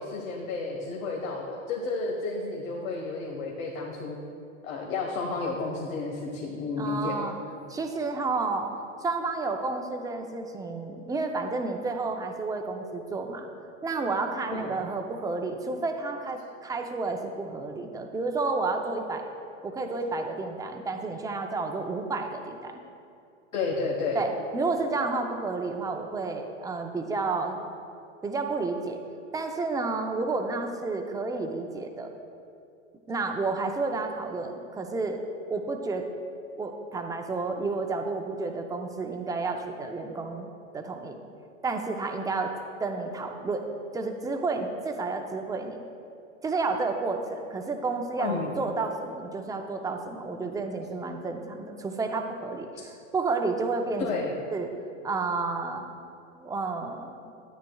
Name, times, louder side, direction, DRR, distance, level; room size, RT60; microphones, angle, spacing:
voice 1, 0.0-4.2 4.6-7.1 14.5-14.8 23.5-24.2 48.2-48.5 52.8-52.9 54.0-54.3, left 3 dB, 90° left, -1 dB, 1.4 m, -31 dB
voice 2, 6.8-7.4 7.7-8.7 9.0-13.5 13.8-19.3 19.6-22.8 24.1-27.6 28.2-29.0 29.3-32.1 33.1-36.0 36.6-40.5 40.7-41.2 41.6-42.5 42.8-43.6 43.9-45.8 46.4-52.7 53.1-54.7 55.0-55.9 56.3-57.3, right 3 dB, 10° right, 4 dB, 0.6 m, -31 dB
12.5 x 9.5 x 2.3 m, 2.6 s
hypercardioid pair, 120°, 39 cm